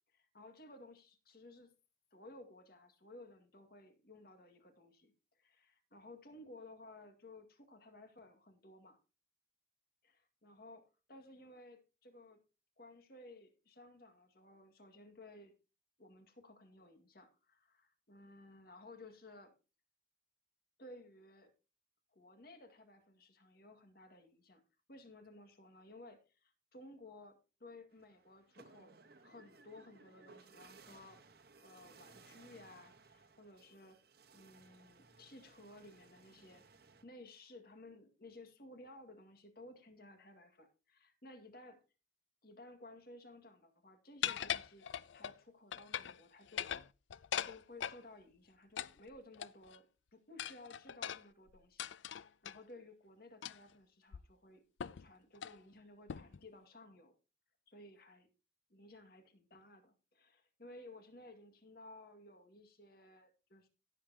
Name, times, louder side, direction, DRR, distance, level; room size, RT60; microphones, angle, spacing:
voice 1, 0.1-1.7 2.1-9.0 10.0-12.4 12.8-15.5 16.0-19.5 20.8-21.5 22.1-24.6 24.9-28.9 29.2-31.2 31.6-34.0 34.3-36.6 37.0-41.8 42.4-44.9 45.1-46.7 47.3-49.9 50.1-51.9 52.4-54.6 55.0-57.1 57.7-58.3 58.7-63.7, left 2 dB, 50° left, 6 dB, 2.0 m, -57 dB
sound 1, 27.9-37.0, right 4 dB, 50° right, 1.2 m, -62 dB
sound 2, 44.2-45.4 45.7-46.2 46.5-48.0 48.8-49.8 50.4-52.6 53.4-53.7 54.1-54.2 54.8-55.1 55.3-55.6 56.1-56.4, left 10 dB, 75° left, 0.4 m, -41 dB
16.5 x 7.4 x 2.8 m, 0.31 s
head